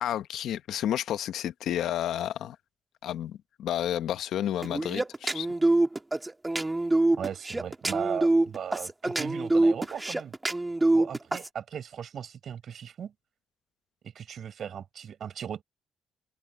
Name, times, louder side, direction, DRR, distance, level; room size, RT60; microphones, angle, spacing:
voice 1, 0.0-2.6 3.0-5.5, left 11 dB, 80° left, 1.1 m, -31 dB
sound 1, 4.6-11.5, right 2 dB, 15° right, 1.8 m, -25 dB
voice 2, 7.2-10.3 10.9-13.1 14.0-15.6, right 8 dB, 60° right, 6.1 m, -37 dB
open air
cardioid pair, 90°, 0 cm